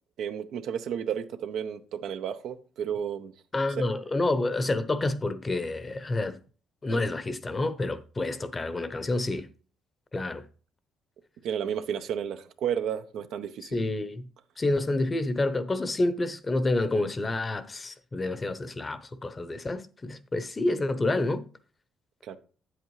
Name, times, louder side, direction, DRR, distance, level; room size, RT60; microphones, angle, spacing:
voice 1, 0.2-3.3 6.9-7.0 11.4-13.8 22.2-22.4, right 8 dB, 75° right, 0.7 m, -32 dB
voice 2, 3.5-6.4 6.8-9.5 10.1-10.5 13.7-14.3 14.6-21.4, left 2 dB, 25° left, 0.7 m, -28 dB
8.6 x 7.9 x 3.1 m
cardioid pair, 90°, 0 cm